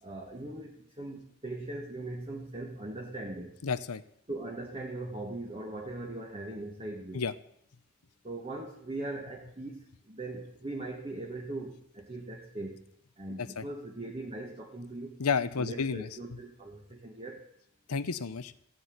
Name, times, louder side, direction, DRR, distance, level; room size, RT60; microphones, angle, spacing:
voice 1, 0.0-3.6 4.3-7.2 8.2-12.8 13.2-15.2 15.6-17.4, right 2 dB, 25° right, -1 dB, 1.5 m, -40 dB
voice 2, 3.6-4.0 7.1-7.3 13.4-13.7 15.2-16.1 17.9-18.5, left 5 dB, 90° left, 13 dB, 0.8 m, -31 dB
15.0 x 6.9 x 9.4 m, 0.72 s
head